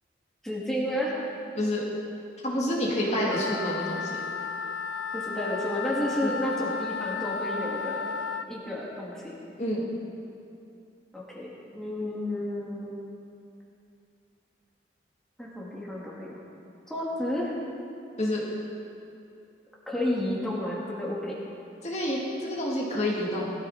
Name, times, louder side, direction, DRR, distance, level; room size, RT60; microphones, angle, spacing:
voice 1, 0.4-1.2 3.1-3.4 5.1-8.0 8.5-9.4 11.1-13.0 15.4-16.4 16.9-17.6 19.9-21.4, left 1 dB, ahead, -6 dB, 2.3 m, -31 dB
voice 2, 2.4-4.2 6.2-6.3 9.6-9.9 18.2-18.4 21.8-23.5, left 1 dB, 35° left, -4 dB, 2.2 m, -28 dB
Wind instrument woodwind instrument, 3.3-8.5, left 5 dB, 85° left, 0.7 m, -33 dB
20.5 x 14.0 x 4.3 m, 2.6 s
head